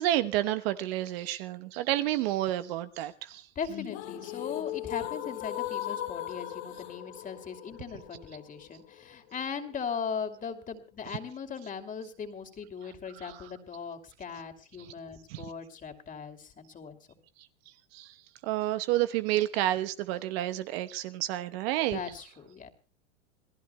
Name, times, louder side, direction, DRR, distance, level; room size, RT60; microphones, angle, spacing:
voice 1, 0.0-3.4 13.2-13.3 15.3-15.4 17.9-18.1 18.4-22.0, right 14 dB, 55° right, 1.0 m, -30 dB
voice 2, 3.5-17.0 21.9-22.7, left 6 dB, 20° left, 2.7 m, -39 dB
sound 1, 3.7-9.7, left 13 dB, 65° left, 2.1 m, -38 dB
27.5 x 18.5 x 2.2 m
hypercardioid pair, 110°, 35 cm